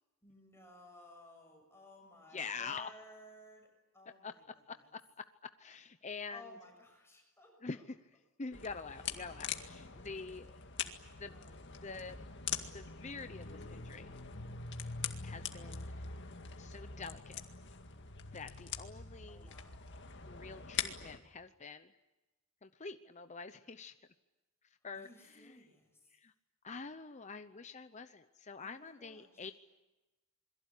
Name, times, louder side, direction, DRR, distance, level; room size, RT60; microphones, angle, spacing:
voice 1, 0.2-3.7 3.9-4.9 6.3-7.8 10.0-10.2 11.1-11.6 19.3-19.8 24.9-26.1 28.6-29.5, left 1 dB, 10° left, 2 dB, 6.8 m, -58 dB
voice 2, 2.3-2.9 4.2-4.3 4.9-5.0 5.6-6.5 7.6-8.0 8.4-11.3 11.8-12.2 12.6-14.1 15.2-15.9 16.6-17.4 18.3-19.5 20.2-21.9 22.6-23.9 24.8-25.7 26.1-26.3 26.6-29.5, left 4 dB, 35° left, 9 dB, 0.8 m, -46 dB
sound 1, 8.5-21.2, left 6 dB, 55° left, 2.0 m, -43 dB
27.5 x 22.5 x 8.4 m, 1.1 s
head